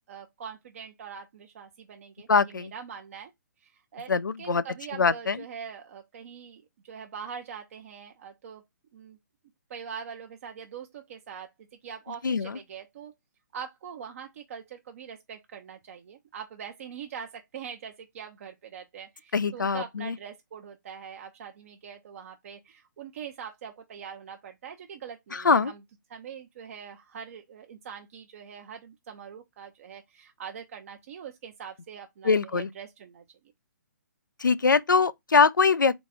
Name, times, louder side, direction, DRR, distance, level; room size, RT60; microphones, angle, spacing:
voice 1, 0.1-3.3 3.6-8.6 8.9-9.2 9.7-13.1 13.5-25.8 26.1-33.2, right 7 dB, 45° right, 0.6 m, -43 dB
voice 2, 2.3-2.7 4.1-4.6 5.0-5.4 12.2-12.6 19.3-20.2 25.3-25.7 32.2-32.7 34.4-36.0, left 5 dB, 90° left, 0.4 m, -23 dB
4.0 x 3.2 x 3.5 m
figure-of-eight pair, 140°, 10 cm